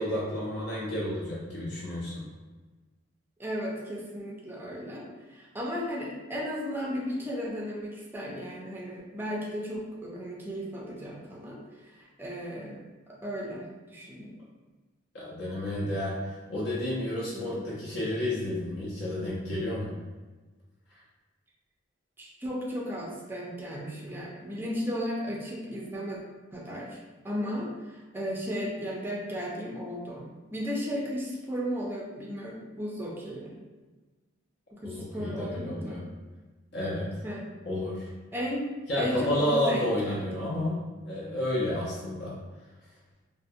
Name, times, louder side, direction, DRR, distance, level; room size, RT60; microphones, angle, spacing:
voice 1, 0.0-2.3 15.1-19.9 34.8-36.0 36.7-37.2 37.7-38.1 38.9-42.3, left 1 dB, 60° left, -6 dB, 0.5 m, -31 dB
voice 2, 3.4-14.3 17.3-17.6 22.2-26.2 26.5-27.0 27.2-33.5 34.7-36.1 37.2-37.5 38.3-38.7 39.0-40.5, equal, 10° right, -3 dB, 0.4 m, -35 dB
2.5 x 2.0 x 2.6 m, 1.3 s
head